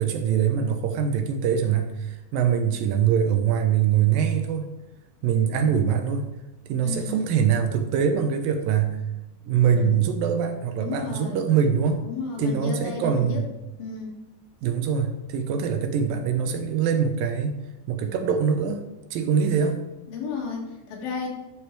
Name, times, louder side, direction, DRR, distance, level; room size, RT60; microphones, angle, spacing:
voice 1, 0.0-4.7 5.2-6.3 6.7-9.0 9.5-12.0 12.4-13.5 14.6-17.6 17.9-18.8 19.1-19.8, right 7 dB, 80° right, 7 dB, 2.5 m, -23 dB
voice 2, 6.8-7.3 9.7-10.0 10.8-11.5 12.0-13.4 13.8-14.2 20.1-21.3, left 4 dB, 80° left, -1 dB, 3.8 m, -33 dB
12.0 x 5.3 x 4.6 m, 1.0 s
omnidirectional pair, 4.2 m